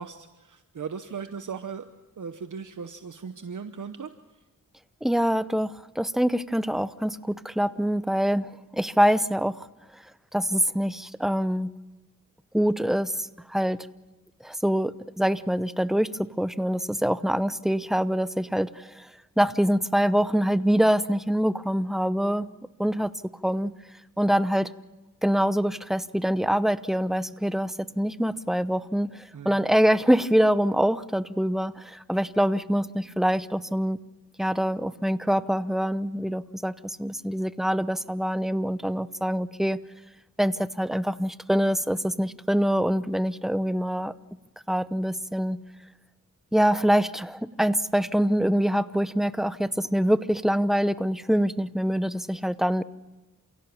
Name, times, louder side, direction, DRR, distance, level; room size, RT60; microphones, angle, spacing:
voice 1, 0.0-1.8 2.2-4.1 29.3-29.5, right 6 dB, 65° right, 9 dB, 1.0 m, -37 dB
voice 2, 5.0-9.6 10.3-11.7 12.5-13.8 14.4-19.1 19.4-22.5 22.8-23.1 23.4-23.7 24.2-24.7 25.2-34.0 34.4-39.8 40.4-44.1 44.7-45.6 46.5-52.8, equal, ahead, 15 dB, 0.7 m, -25 dB
28.0 x 17.0 x 7.1 m, 1.1 s
cardioid pair, 60°, 33 cm